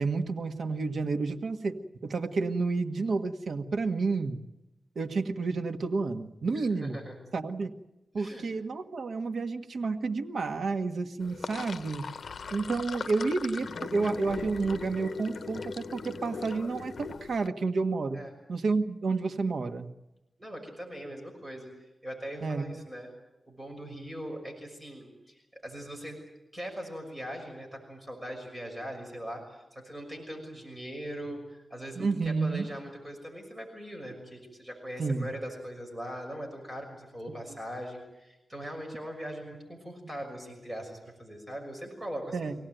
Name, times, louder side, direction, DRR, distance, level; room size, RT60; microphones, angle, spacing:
voice 1, 0.0-4.4 4.9-7.0 7.3-7.8 8.1-12.1 12.5-18.2 18.5-19.9 22.4-22.6 31.9-32.7 35.0-35.3 42.3-42.5, right 4 dB, 70° right, 7 dB, 1.6 m, -30 dB
voice 2, 6.5-7.2 8.2-8.5 18.1-18.3 20.4-23.1 23.5-26.2 26.5-42.6, equal, 15° right, 2 dB, 6.2 m, -41 dB
Sink (filling or washing), 11.2-17.5, left 5 dB, 70° left, 0.8 m, -39 dB
25.5 x 17.5 x 9.2 m, 0.98 s
wide cardioid pair, 110°, 0 cm